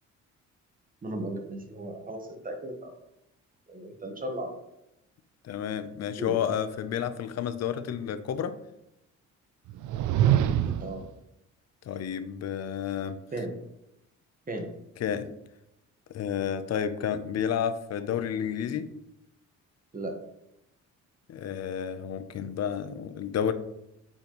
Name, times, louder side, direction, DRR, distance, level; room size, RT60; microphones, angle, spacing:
voice 1, 1.0-2.9 3.7-4.5 6.2-6.4 10.6-11.0 13.3-13.5 14.5-14.7 19.9-20.2, right 1 dB, 30° right, 4 dB, 1.3 m, -36 dB
voice 2, 5.4-8.5 11.9-13.2 15.0-15.3 16.1-18.9 21.3-23.5, left 8 dB, 60° left, 12 dB, 0.6 m, -31 dB
sound 1, 9.7-11.0, right 10 dB, 75° right, 0.5 m, -24 dB
8.6 x 4.4 x 3.0 m, 0.87 s
cardioid pair, 90°, 30 cm